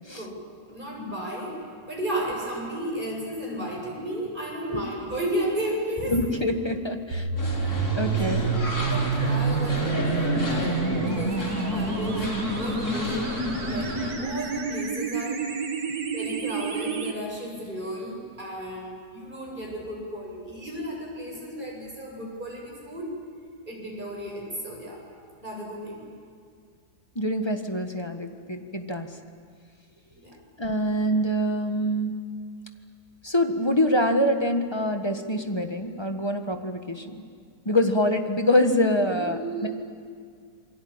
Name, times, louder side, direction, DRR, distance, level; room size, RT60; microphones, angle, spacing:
voice 1, 0.7-1.6 1.9-6.2 7.3-7.4 8.2-8.5 8.8-12.2 12.6-13.3 13.7-15.4 16.1-23.1 23.7-25.0 25.4-26.1 30.1-30.4 39.1-39.7, right 1 dB, 30° right, -2 dB, 8.0 m, -34 dB
voice 2, 6.1-7.3 8.0-8.5 27.1-29.1 30.6-32.1 33.2-37.2 37.6-39.7, left 1 dB, 15° left, 5 dB, 1.4 m, -25 dB
sound 1, 7.1-17.1, right 4 dB, 75° right, 2.5 m, -28 dB
sound 2, 7.4-14.1, left 1 dB, 70° left, 4.3 m, -31 dB
28.5 x 22.5 x 8.8 m, 2.1 s
omnidirectional pair, 1.7 m